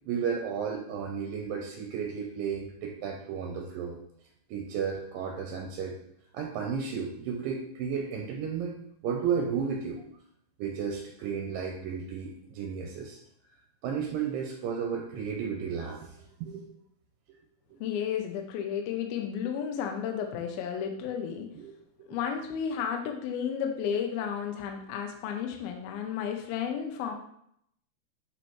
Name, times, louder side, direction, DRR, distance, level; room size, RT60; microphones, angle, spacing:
voice 1, 0.1-4.0 4.5-6.0 6.3-8.8 9.0-10.0 10.6-13.2 13.8-16.7 21.6-21.7, right 6 dB, 75° right, 1 dB, 2.1 m, -33 dB
voice 2, 17.8-21.5 22.1-27.1, left 8 dB, 80° left, 3 dB, 2.3 m, -32 dB
9.2 x 4.1 x 3.1 m, 0.71 s
omnidirectional pair, 4.9 m